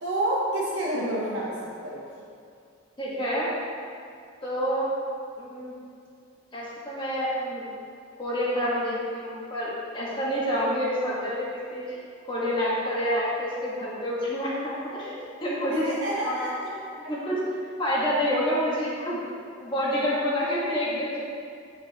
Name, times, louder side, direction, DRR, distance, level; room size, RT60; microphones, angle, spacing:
voice 1, 0.0-2.0 15.7-16.5, right 1 dB, 70° right, -6 dB, 0.8 m, -28 dB
voice 2, 3.0-3.5 4.4-4.9 5.4-5.7 6.5-7.6 8.2-12.0 12.3-15.1 15.4-15.8 16.2-16.4 17.0-19.2 19.6-21.3, equal, 25° left, -7 dB, 1.5 m, -28 dB
9.0 x 5.1 x 2.9 m, 2.4 s
head